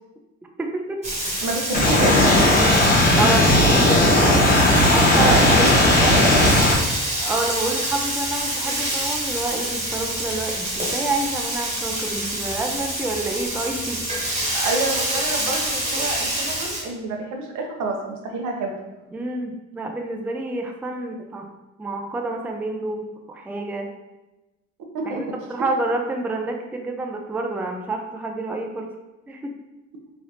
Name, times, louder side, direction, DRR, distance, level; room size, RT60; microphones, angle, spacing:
voice 1, 0.6-1.0 3.2-4.5 4.9-5.3 6.0-6.3 7.2-14.0 19.1-21.5 21.8-23.9 25.1-28.9 29.3-29.5, right 2 dB, 5° right, 2 dB, 0.3 m, -28 dB
Frying (food), 1.0-16.8, right 1 dB, 20° right, 1.1 m, -27 dB
voice 2, 1.4-2.7 5.2-6.5 14.5-18.7 24.9-25.2, right 2 dB, 80° right, 1 dB, 0.7 m, -28 dB
sound 1, 1.7-6.7, left 1 dB, 30° left, 0.8 m, -16 dB
3.3 x 2.4 x 2.8 m, 1.1 s
cardioid pair, 90°, 30 cm